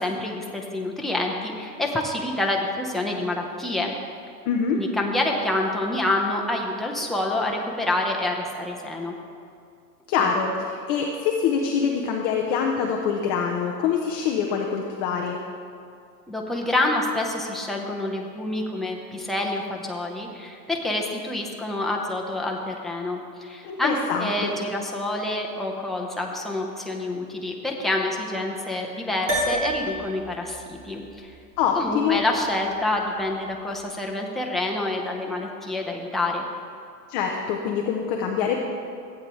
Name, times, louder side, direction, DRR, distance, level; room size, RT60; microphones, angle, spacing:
voice 1, 0.0-3.9 4.8-9.1 10.2-10.3 16.3-31.3 31.7-36.4, left 2 dB, ahead, -1 dB, 0.7 m, -27 dB
voice 2, 4.5-4.8 10.1-15.4 23.6-24.6 31.6-32.2 37.1-38.6, left 6 dB, 20° left, 1 dB, 0.3 m, -25 dB
sound 1, 29.3-33.9, right 1 dB, 35° right, 2.5 m, -32 dB
15.0 x 8.6 x 3.1 m, 2.4 s
hypercardioid pair, 125°, 49 cm